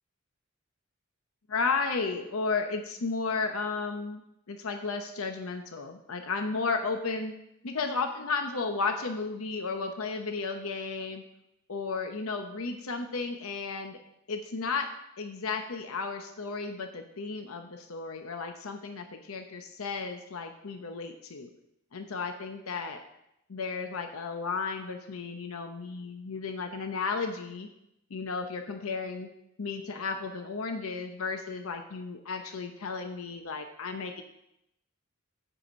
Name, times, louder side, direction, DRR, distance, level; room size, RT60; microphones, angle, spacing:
voice 1, 1.5-7.3 7.6-11.2 11.7-14.0 14.3-14.9 15.2-21.5 21.9-23.0 23.5-27.7 28.1-29.3 29.6-34.2, left 4 dB, 85° left, 5 dB, 0.8 m, -33 dB
7.7 x 4.9 x 7.2 m, 0.81 s
head